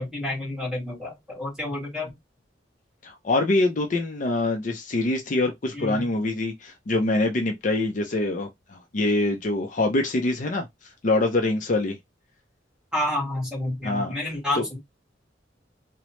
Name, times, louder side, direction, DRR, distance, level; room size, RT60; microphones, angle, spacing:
voice 1, 0.0-2.1 5.7-6.0 12.9-14.8, left 1 dB, 5° right, 1.6 m, -29 dB
voice 2, 3.0-10.7 11.0-12.0 13.8-14.2 14.5-14.7, left 2 dB, 45° left, 0.5 m, -24 dB
2.9 x 2.0 x 3.0 m
head